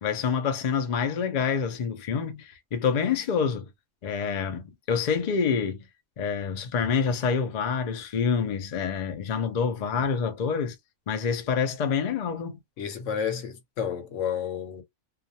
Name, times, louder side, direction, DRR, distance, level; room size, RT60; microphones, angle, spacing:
voice 1, 0.0-3.7 4.0-5.8 6.2-10.8 11.1-12.6, left 6 dB, 80° left, 0.3 m, -27 dB
voice 2, 12.8-14.8, left 8 dB, 65° left, 1.0 m, -31 dB
2.4 x 2.3 x 2.7 m
omnidirectional pair, 1.5 m